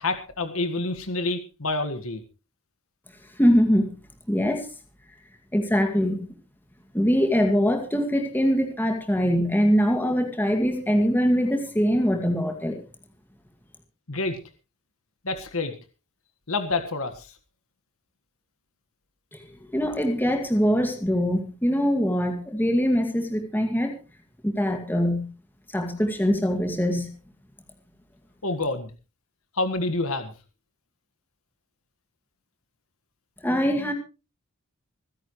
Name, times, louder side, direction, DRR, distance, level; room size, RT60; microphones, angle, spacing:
voice 1, 0.0-2.2 14.1-14.4 15.2-15.7 16.5-17.3 28.4-28.9 29.5-30.3, left 2 dB, 75° left, 9 dB, 1.7 m, -28 dB
voice 2, 3.4-3.9 4.3-4.7 5.5-6.3 6.9-12.8 19.7-24.0 24.4-25.3 25.7-27.1 33.4-33.9, equal, 10° left, 4 dB, 2.0 m, -23 dB
25.5 x 10.5 x 3.2 m, 0.31 s
head